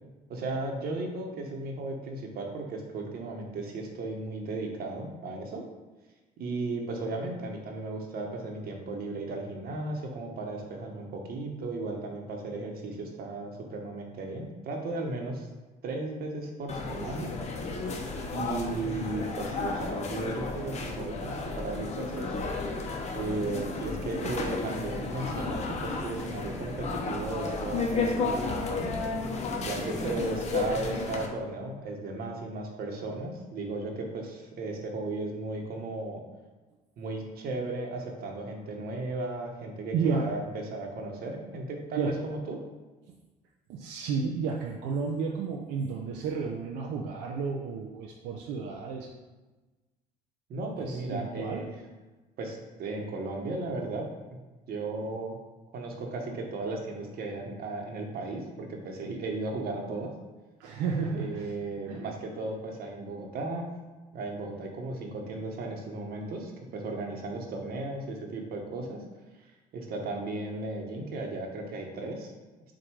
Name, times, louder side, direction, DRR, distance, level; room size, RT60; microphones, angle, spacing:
voice 1, 0.3-5.6 6.4-15.5 15.8-17.3 18.3-22.4 23.1-28.9 29.6-36.2 37.0-42.6 50.5-51.7 52.4-54.0 54.3-54.4 54.7-55.4 55.7-60.1 61.2-63.7 64.1-69.0 69.7-72.3, right 2 dB, 65° right, 2 dB, 1.2 m, -35 dB
sound 1, 16.7-31.3, left 3 dB, 40° left, 0.9 m, -33 dB
voice 2, 39.9-40.3 42.0-42.1 43.7-49.1 50.8-51.6 60.6-61.5 61.9-62.0, right 5 dB, 85° right, 0 dB, 0.6 m, -32 dB
7.7 x 2.6 x 4.7 m, 1.2 s
cardioid pair, 110°, 17 cm